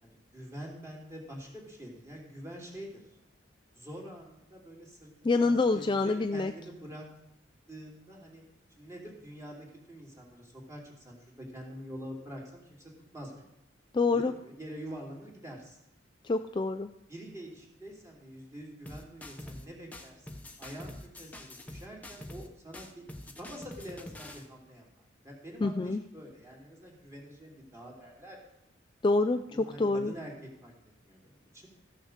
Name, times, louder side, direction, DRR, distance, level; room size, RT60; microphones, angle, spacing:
voice 1, 0.0-3.0 3.7-7.1 7.7-8.4 8.7-13.4 14.1-15.8 17.1-20.3 20.6-28.4 29.5-30.7 31.1-31.7, equal, 15° right, -2 dB, 2.9 m, -46 dB
voice 2, 5.2-6.5 13.9-14.3 16.2-16.9 25.6-26.0 29.0-30.1, left 3 dB, 25° left, 8 dB, 0.3 m, -27 dB
sound 1, 18.9-19.7 19.9-22.5 22.7-24.5, left 1 dB, 10° left, 1.0 m, -45 dB
14.5 x 6.3 x 6.5 m, 0.81 s
head